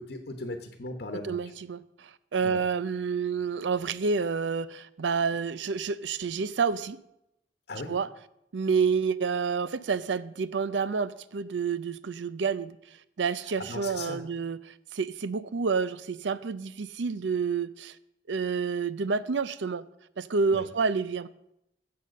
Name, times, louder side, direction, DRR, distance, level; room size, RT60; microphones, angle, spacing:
voice 1, 0.0-1.4 2.4-2.6 7.7-7.9 13.6-14.2 20.5-20.7, left 2 dB, 60° left, 1.1 m, -38 dB
voice 2, 1.2-7.0 7.9-8.1 8.5-12.8 13.2-18.0 18.3-19.9 20.2-21.3, right 5 dB, 80° right, 0.5 m, -29 dB
10.5 x 7.7 x 6.4 m
head